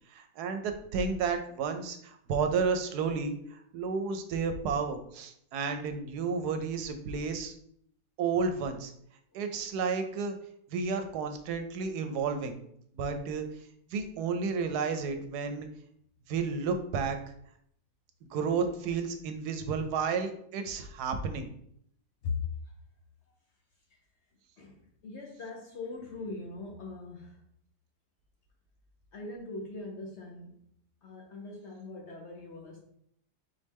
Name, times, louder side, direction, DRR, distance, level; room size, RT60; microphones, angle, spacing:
voice 1, 0.1-7.5 8.2-8.9 9.3-10.3 10.7-12.6 13.0-13.5 13.9-15.7 16.3-17.2 18.3-21.5, right 5 dB, 80° right, 7 dB, 1.1 m, -32 dB
voice 2, 24.6-27.4 29.1-30.5 31.0-32.8, left 3 dB, 60° left, 0 dB, 0.8 m, -41 dB
4.2 x 3.1 x 3.4 m, 0.69 s
omnidirectional pair, 1.7 m